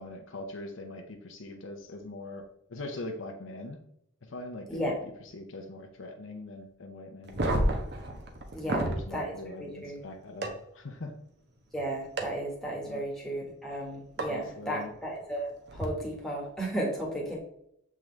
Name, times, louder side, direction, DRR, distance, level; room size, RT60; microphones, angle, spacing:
voice 1, 0.0-2.4 2.7-3.8 4.3-4.9 5.3-7.8 8.6-11.1 12.8-13.0 14.3-14.9, left 2 dB, 65° left, 4 dB, 0.8 m, -42 dB
sound 1, 7.2-9.0 10.4-10.5 12.2-12.3 14.2-14.3 15.7-15.8, right 1 dB, 50° right, 1.0 m, -29 dB
voice 2, 8.5-10.0 11.7-17.4, right 1 dB, ahead, -3 dB, 1.4 m, -34 dB
7.7 x 3.7 x 3.3 m, 0.75 s
head